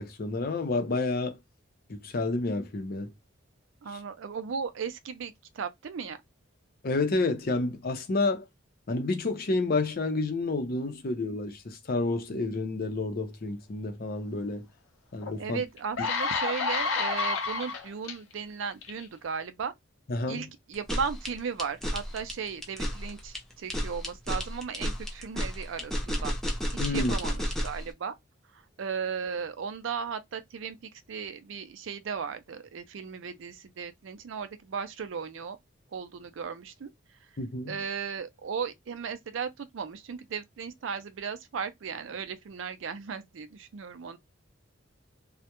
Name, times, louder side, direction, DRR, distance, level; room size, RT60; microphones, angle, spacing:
voice 1, 0.0-1.4 1.9-3.1 6.8-8.5 8.9-14.7 15.1-15.6 20.1-20.4 26.8-27.1 37.4-37.8, left 2 dB, 50° left, 0.6 m, -29 dB
voice 2, 3.8-6.2 15.4-19.7 20.3-26.3 26.8-28.1 28.5-35.6 35.9-36.9 37.2-37.3 37.7-44.2, right 6 dB, 70° right, 0.4 m, -36 dB
sound 1, 15.2-15.3 15.8-18.1 18.8-19.0, left 4 dB, 85° left, 0.7 m, -29 dB
sound 2, 20.7-27.8, equal, ahead, 0.4 m, -31 dB
2.2 x 2.1 x 2.8 m
head